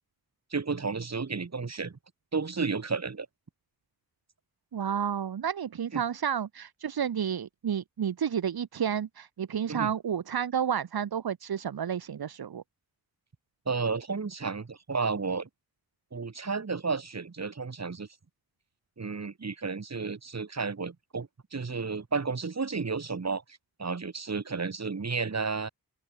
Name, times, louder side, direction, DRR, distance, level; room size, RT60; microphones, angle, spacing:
voice 1, 0.5-2.0 2.3-3.3 5.9-6.0 9.7-9.9 13.7-15.5 16.1-18.1 19.0-23.4 23.8-25.7, right 4 dB, 45° right, 4.8 m, -32 dB
voice 2, 4.7-12.6, right 8 dB, 85° right, 1.4 m, -31 dB
open air
wide cardioid pair, 135°, 36 cm